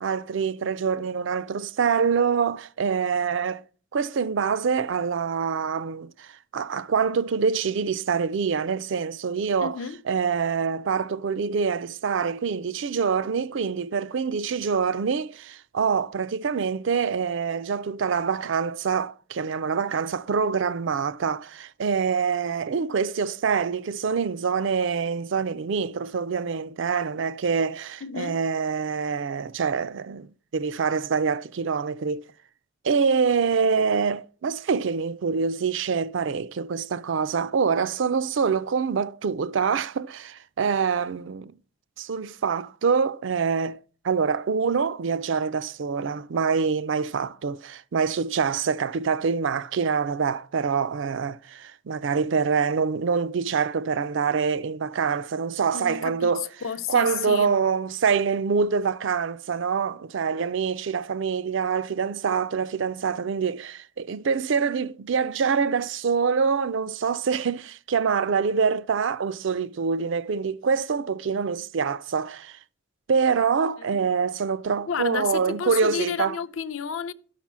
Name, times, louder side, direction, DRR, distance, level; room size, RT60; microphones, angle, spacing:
voice 1, 0.0-3.6 3.9-9.8 10.1-32.2 32.8-41.5 42.0-56.5 56.9-72.6 73.1-76.4, right 6 dB, 60° right, 0.4 m, -25 dB
voice 2, 9.6-10.0 28.0-28.4 55.7-57.5 73.9-74.0 74.8-77.1, left 7 dB, 75° left, 0.6 m, -31 dB
12.0 x 5.8 x 6.1 m
head